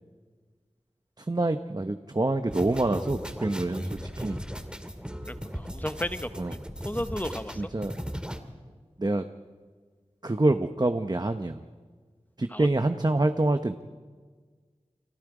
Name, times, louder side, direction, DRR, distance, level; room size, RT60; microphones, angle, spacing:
voice 1, 1.2-4.4 6.4-6.5 7.6-7.9 9.0-9.2 10.2-11.7 12.4-13.7, right 2 dB, 35° right, 8 dB, 1.0 m, -26 dB
sound 1, 2.5-8.4, equal, 10° right, 2.3 m, -37 dB
voice 2, 5.4-6.6 6.8-7.7 12.5-12.7, left 1 dB, 15° left, 11 dB, 1.0 m, -33 dB
30.0 x 24.0 x 5.0 m, 1.5 s
wide cardioid pair, 55°, 12 cm